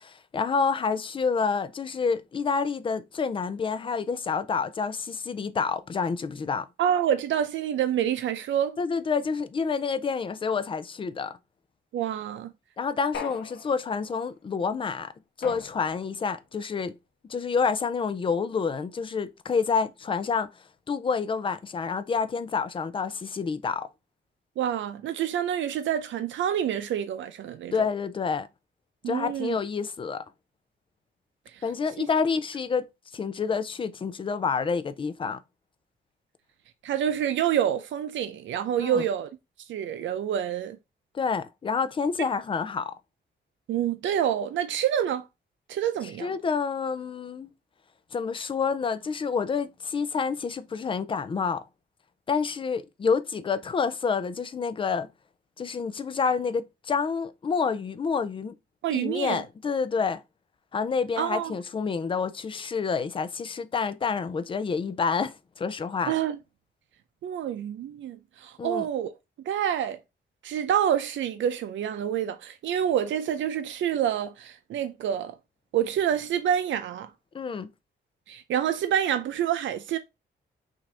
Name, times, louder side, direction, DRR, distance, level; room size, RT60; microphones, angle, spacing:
voice 1, 0.0-6.7 8.8-11.4 12.8-15.1 15.4-16.9 17.3-20.5 20.9-23.9 27.7-28.5 29.1-30.2 31.6-32.9 33.1-35.4 38.8-39.0 41.1-43.0 46.2-47.5 48.1-51.6 52.3-55.1 55.6-58.6 58.9-60.2 60.7-66.1 68.6-68.9 77.3-77.7, left 5 dB, 30° left, 0.4 m, -28 dB
voice 2, 6.8-8.8 11.9-12.5 24.6-27.9 29.0-29.6 31.5-31.6 32.0-32.1 36.8-39.3 39.7-40.8 43.7-45.2 45.7-46.3 58.8-59.4 61.2-61.5 66.1-66.4 67.2-69.1 69.5-70.0 70.4-75.3 75.7-77.1 78.3-80.0, right 9 dB, 90° right, 0.6 m, -27 dB
sound 1, 13.1-14.1 15.4-16.3, left 6 dB, 85° left, 0.9 m, -39 dB
5.9 x 2.6 x 3.3 m
wide cardioid pair, 155°, 19 cm